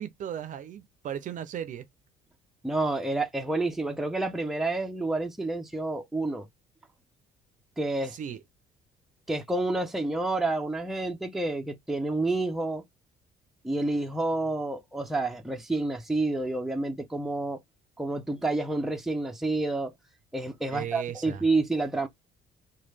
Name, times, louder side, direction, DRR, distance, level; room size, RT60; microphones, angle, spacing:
voice 1, 0.0-1.8 8.1-8.4 20.7-21.4, right 9 dB, 50° right, 0.5 m, -36 dB
voice 2, 2.6-6.5 7.8-8.2 9.3-12.8 13.6-17.6 18.0-19.9 20.3-22.1, right 2 dB, ahead, 0.5 m, -29 dB
3.0 x 2.3 x 3.2 m
cardioid pair, 110°, 17 cm